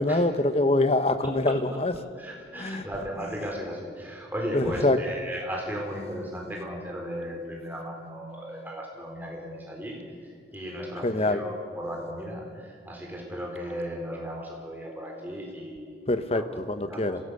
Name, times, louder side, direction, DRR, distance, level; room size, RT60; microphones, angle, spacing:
voice 1, 0.0-1.9 2.6-2.9 4.5-5.0 11.0-11.4 16.1-17.2, left 2 dB, 35° left, 10 dB, 1.0 m, -24 dB
voice 2, 2.2-16.4 16.8-17.2, equal, 10° right, -1 dB, 3.9 m, -36 dB
25.5 x 16.5 x 6.8 m, 2.1 s
head